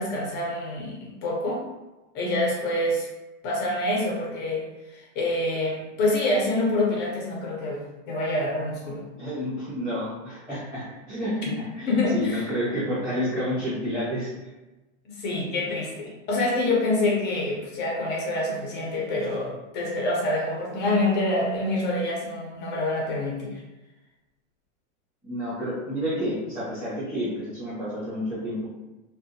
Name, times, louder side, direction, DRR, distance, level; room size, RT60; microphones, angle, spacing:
voice 1, 0.0-1.6 2.1-3.1 3.4-7.8 8.1-9.0 11.4-11.6 11.9-12.5 15.1-23.6, left 2 dB, 30° left, -2 dB, 0.5 m, -26 dB
voice 2, 9.2-14.3 25.2-28.6, equal, 10° right, -12 dB, 1.1 m, -30 dB
2.6 x 2.2 x 2.6 m, 1.1 s
supercardioid pair, 140°, 37 cm